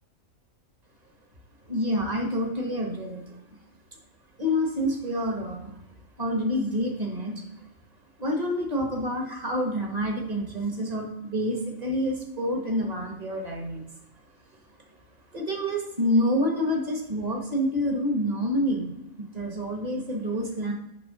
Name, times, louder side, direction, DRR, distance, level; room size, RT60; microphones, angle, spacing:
voice 1, 1.7-3.4 4.4-5.7 6.2-7.4 8.2-13.8 15.3-18.9 19.2-20.7, equal, 30° right, 1 dB, 1.4 m, -27 dB
8.7 x 3.2 x 6.3 m, 0.91 s
omnidirectional pair, 1.5 m